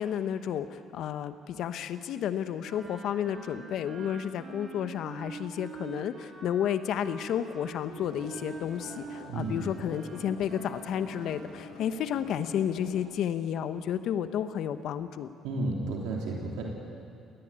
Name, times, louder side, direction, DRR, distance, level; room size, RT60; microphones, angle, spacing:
voice 1, 0.0-15.3, left 9 dB, 70° left, 11 dB, 1.1 m, -32 dB
Wind instrument woodwind instrument, 2.6-11.7, right 4 dB, 45° right, 4.3 m, -45 dB
sound 1, 7.9-13.0, left 3 dB, 85° left, 3.5 m, -46 dB
voice 2, 9.2-9.5 15.4-16.6, right 2 dB, 85° right, -1 dB, 3.5 m, -32 dB
20.5 x 18.5 x 8.9 m, 2.4 s
supercardioid pair, 75°, 0 cm